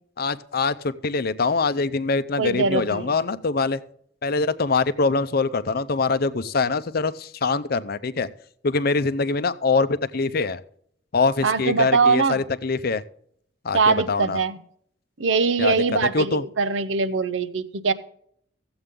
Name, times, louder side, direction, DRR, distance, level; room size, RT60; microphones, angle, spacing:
voice 1, 0.2-3.8 4.2-8.3 8.6-10.6 11.1-13.0 13.6-14.4 15.6-15.7 16.1-16.4, left 4 dB, 55° left, 13 dB, 0.6 m, -23 dB
voice 2, 2.4-3.1 11.4-12.4 13.7-14.6 15.2-17.9, right 4 dB, 85° right, 13 dB, 0.7 m, -22 dB
14.5 x 7.9 x 3.7 m, 0.65 s
head